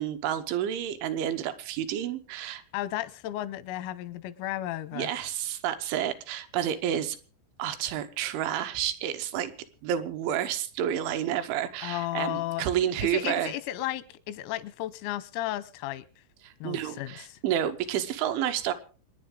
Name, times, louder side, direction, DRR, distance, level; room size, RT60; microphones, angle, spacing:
voice 1, 0.0-2.6 4.9-7.2 7.6-9.5 9.8-13.5 16.4-18.7, right 10 dB, 75° right, 3.2 m, -30 dB
voice 2, 2.7-5.1 11.8-12.7 13.0-16.1 16.6-17.4, left 14 dB, 90° left, 3.7 m, -34 dB
27.0 x 10.0 x 3.8 m
omnidirectional pair, 6.0 m